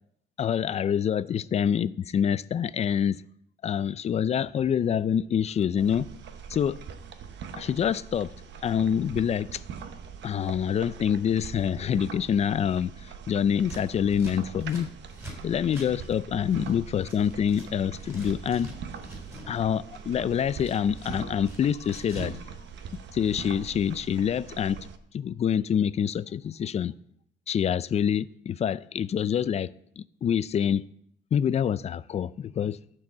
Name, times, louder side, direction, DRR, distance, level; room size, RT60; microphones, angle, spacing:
voice 1, 0.4-3.2 3.6-6.1 6.5-6.8 7.6-8.3 8.6-9.6 10.2-14.9 15.4-18.7 19.5-22.4 23.1-24.8 25.1-26.9 27.5-29.7 30.0-30.8 31.3-32.8, left 8 dB, 35° left, 0.3 m, -26 dB
sound 1, 5.8-25.0, right 6 dB, 65° right, 1.0 m, -42 dB
Scissors, 13.6-17.7 17.9-19.5 19.8-22.4 22.7-23.6, equal, 15° right, 3.8 m, -44 dB
12.5 x 4.7 x 7.2 m
cardioid pair, 130°, 20 cm